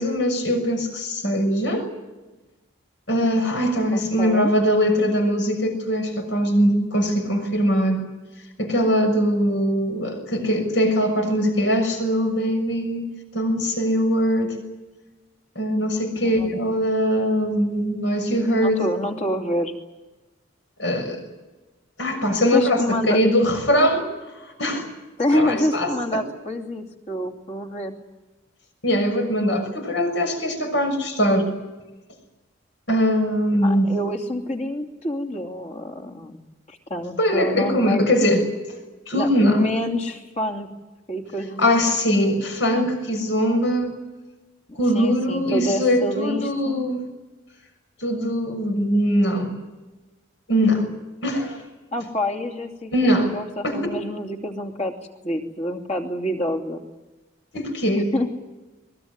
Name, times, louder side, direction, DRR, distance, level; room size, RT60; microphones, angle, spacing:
voice 1, 0.0-1.9 3.1-8.0 8.6-14.6 15.5-18.8 20.8-21.2 22.0-24.1 24.6-24.8 25.3-26.2 28.8-31.5 32.9-33.9 37.2-38.4 39.1-39.7 41.6-44.0 44.8-47.0 48.0-49.5 50.5-50.9 51.2-51.6 52.9-53.3 53.6-53.8 57.5-58.1, equal, 65° left, 6 dB, 6.5 m, -21 dB
voice 2, 3.9-4.5 16.2-16.5 18.6-19.8 22.5-23.2 24.7-24.9 25.2-27.9 33.6-36.4 36.7-38.0 39.1-40.7 41.1-41.9 44.9-46.8 51.9-54.9 55.2-56.8 58.1-58.3, left 1 dB, 35° left, 3 dB, 2.8 m, -27 dB
22.5 x 21.5 x 9.8 m, 1.1 s
head